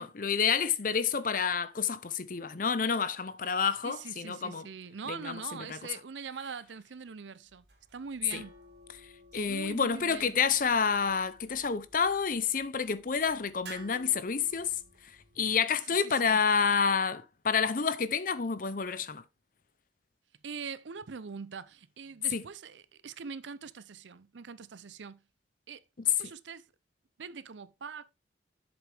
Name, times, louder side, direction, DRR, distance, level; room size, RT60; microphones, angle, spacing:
voice 1, 0.0-4.7 5.1-5.8 8.3-8.4 9.3-14.7 15.4-19.2 22.3-22.4 26.0-26.1, left 6 dB, 50° left, 0.7 m, -29 dB
voice 2, 3.8-7.6 7.9-8.5 9.5-10.4 15.9-16.4 20.4-25.2 25.7-25.8 26.2-26.7 27.2-28.1, right 5 dB, 85° right, 0.6 m, -43 dB
sound 1, 7.5-15.5, right 1 dB, 65° right, 3.4 m, -54 dB
7.9 x 6.9 x 3.4 m
head